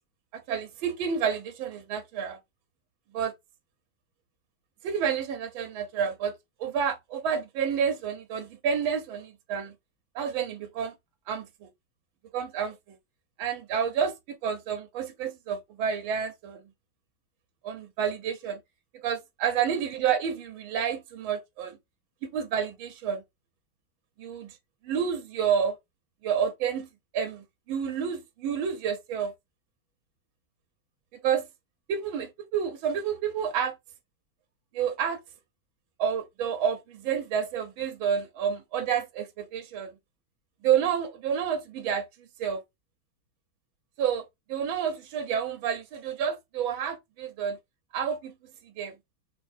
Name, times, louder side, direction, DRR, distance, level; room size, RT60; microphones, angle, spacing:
voice 1, 0.5-2.4 3.1-3.3 4.8-6.3 6.6-9.7 10.1-10.9 11.3-11.7 12.3-12.8 13.4-14.1 14.4-16.6 17.6-18.6 19.0-21.8 22.2-23.2 24.2-24.6 24.8-25.8 26.2-26.9 27.1-29.3 31.2-31.4 31.9-33.7 34.7-35.2 36.0-39.9 40.6-42.1 42.4-42.6 44.0-44.2 44.5-47.6 47.9-48.3 48.8-48.9, right 7 dB, 80° right, 1.4 m, -29 dB
3.7 x 2.7 x 3.1 m
omnidirectional pair, 2.2 m